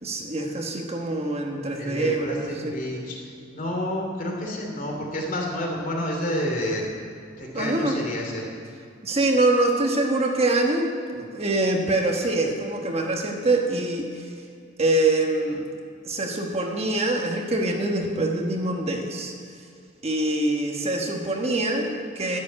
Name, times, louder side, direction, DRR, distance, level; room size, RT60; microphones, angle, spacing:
voice 1, 0.0-2.8 7.5-8.0 9.0-14.2 14.8-15.6 16.0-19.3 20.0-22.4, right 2 dB, 35° right, 1 dB, 1.3 m, -24 dB
voice 2, 1.8-3.2 3.5-6.9 7.4-8.4, left 1 dB, 45° left, 0 dB, 2.7 m, -29 dB
11.5 x 8.1 x 9.7 m, 2.3 s
head